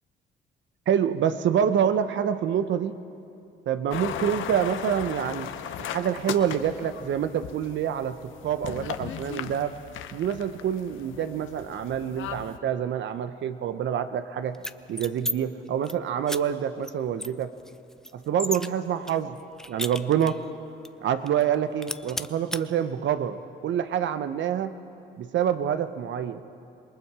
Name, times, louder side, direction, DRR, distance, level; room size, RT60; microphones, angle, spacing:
voice 1, 0.9-2.9 3.7-5.5 5.9-8.2 8.4-9.7 10.1-14.6 14.9-17.5 18.1-19.4 19.7-20.4 21.0-24.7 25.2-26.4, right 9 dB, 70° right, 11 dB, 0.9 m, -26 dB
sound 1, 3.9-12.6, left 9 dB, 80° left, 0.9 m, -37 dB
sound 2, 14.5-15.3 15.7-15.9 16.3-16.4 16.8-16.9 17.2-18.7 19.1-20.5 20.8-20.9 21.3-21.5 21.8-22.6, equal, 5° left, 0.5 m, -33 dB
27.0 x 20.0 x 4.9 m, 2.6 s
cardioid pair, 90°, 20 cm